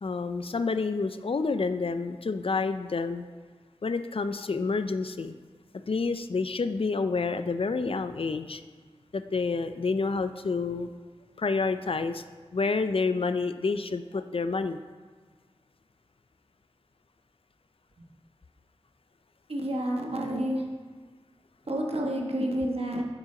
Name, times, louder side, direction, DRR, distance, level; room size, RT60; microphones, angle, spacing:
voice 1, 0.0-3.2 3.8-5.4 5.9-8.6 9.1-10.9 11.4-12.2 12.5-14.8, left 4 dB, 60° left, 10 dB, 0.4 m, -29 dB
voice 2, 19.5-20.6 21.7-23.0, right 1 dB, 70° right, 0 dB, 1.2 m, -29 dB
9.3 x 6.1 x 3.8 m, 1.5 s
cardioid pair, 40°, 11 cm